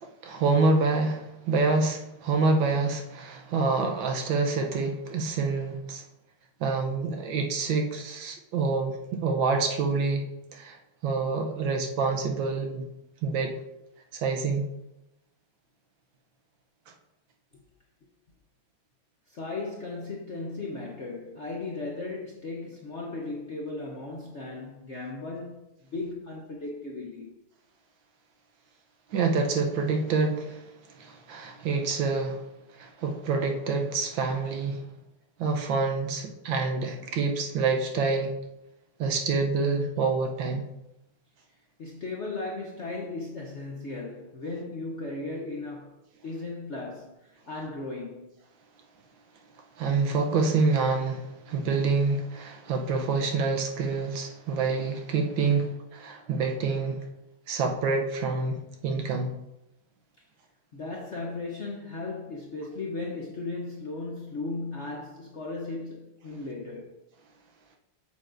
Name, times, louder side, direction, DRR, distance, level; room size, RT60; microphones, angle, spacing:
voice 1, 0.0-6.0 6.6-10.2 10.5-10.8 11.0-12.9 13.2-13.5 14.1-14.7 29.1-30.6 31.0-32.4 32.8-34.8 35.4-38.3 39.0-40.6 49.8-57.0 57.5-59.3, right 4 dB, 70° right, 1.5 m, -27 dB
voice 2, 19.3-25.6 25.9-27.3 41.8-46.0 46.2-48.4 60.7-67.0, left 3 dB, 55° left, 0.8 m, -36 dB
8.4 x 7.2 x 2.6 m
omnidirectional pair, 2.3 m